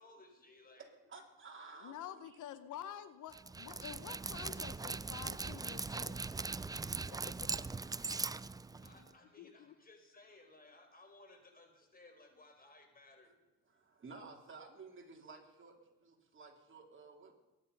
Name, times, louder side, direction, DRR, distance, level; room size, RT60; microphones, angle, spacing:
voice 1, 0.0-0.9 8.8-13.3, left 2 dB, 30° left, 5 dB, 4.4 m, -60 dB
voice 2, 0.8-2.4 7.8-8.9 13.7-17.3, right 4 dB, 40° right, 2 dB, 3.4 m, -55 dB
voice 3, 1.8-6.3 8.7-8.9 9.4-9.7, left 10 dB, 80° left, 12 dB, 1.0 m, -49 dB
Dog, 3.3-9.1, right 3 dB, 15° right, 0.4 m, -40 dB
22.0 x 10.0 x 5.5 m, 1.1 s
cardioid pair, 90°, 30 cm